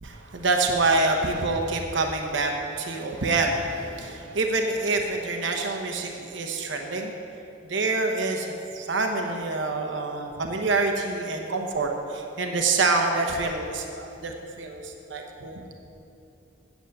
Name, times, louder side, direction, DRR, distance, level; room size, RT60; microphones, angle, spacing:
voice 1, 0.0-7.1 7.6-15.6, right 3 dB, 75° right, 3 dB, 1.0 m, -26 dB
8.1 x 8.0 x 7.8 m, 2.7 s
head